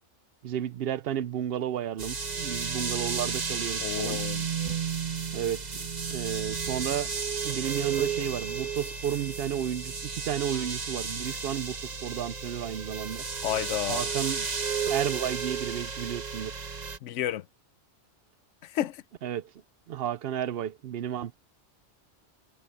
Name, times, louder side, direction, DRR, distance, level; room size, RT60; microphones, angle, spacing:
voice 1, 0.4-4.2 5.3-5.8 6.1-7.1 7.4-13.2 13.9-14.5 14.9-16.5 19.2-19.5 19.9-21.4, right 10 dB, 60° right, 0.8 m, -32 dB
sound 1, 2.0-17.0, right 5 dB, 35° right, 1.3 m, -33 dB
voice 2, 3.8-4.5 13.4-14.1 17.0-17.4 18.6-19.0, left 12 dB, 90° left, 0.9 m, -31 dB
omnidirectional pair, 1.2 m